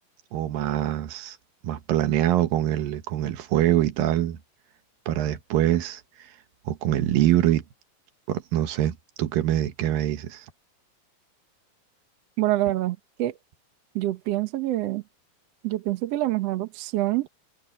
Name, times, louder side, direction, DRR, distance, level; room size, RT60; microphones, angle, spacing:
voice 1, 0.3-1.4 1.6-4.4 5.1-6.3 6.7-7.6 8.3-10.5, right 12 dB, 85° right, 3.0 m, -24 dB
voice 2, 12.4-13.4 14.0-15.0 15.6-17.3, right 15 dB, 65° right, 1.8 m, -26 dB
omnidirectional pair, 4.0 m